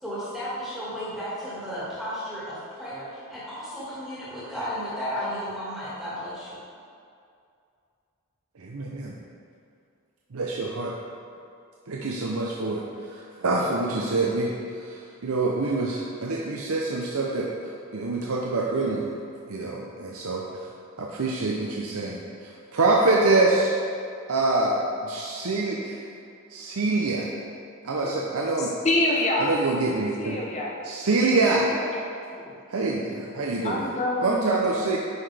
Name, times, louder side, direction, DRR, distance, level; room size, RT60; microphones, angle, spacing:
voice 1, 0.0-6.6, equal, ahead, -11 dB, 1.8 m, -34 dB
voice 2, 8.6-9.1 10.3-10.9 11.9-17.5 17.9-19.2 19.5-20.4 21.0-23.7 24.3-26.0 26.5-27.3 27.8-28.7 29.4-30.4 30.8-31.7 32.7-33.9 34.2-35.0, right 3 dB, 80° right, -2 dB, 0.7 m, -25 dB
voice 3, 28.6-29.5 30.2-30.7 31.9-32.0 32.3-32.5 33.0-33.2 33.6-34.5, left 2 dB, 30° left, -2 dB, 0.7 m, -26 dB
9.6 x 5.9 x 3.3 m, 2.4 s
head